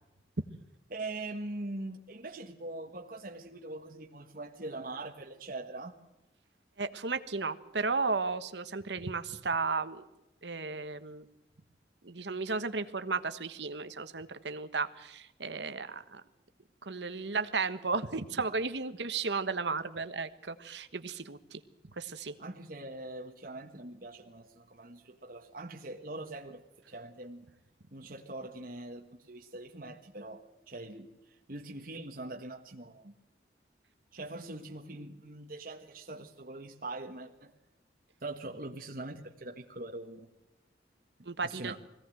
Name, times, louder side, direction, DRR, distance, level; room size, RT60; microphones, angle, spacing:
voice 1, 0.9-6.0 22.4-26.6 26.9-27.4 27.9-31.1 31.5-33.1 34.1-37.5 38.2-40.3 41.4-41.7, right 2 dB, 50° right, 2 dB, 1.5 m, -42 dB
voice 2, 6.8-10.0 10.4-11.2 12.0-16.2 16.9-21.6 22.0-22.3 41.2-41.7, right 4 dB, 85° right, 11 dB, 1.3 m, -34 dB
21.5 x 17.0 x 7.8 m, 0.95 s
head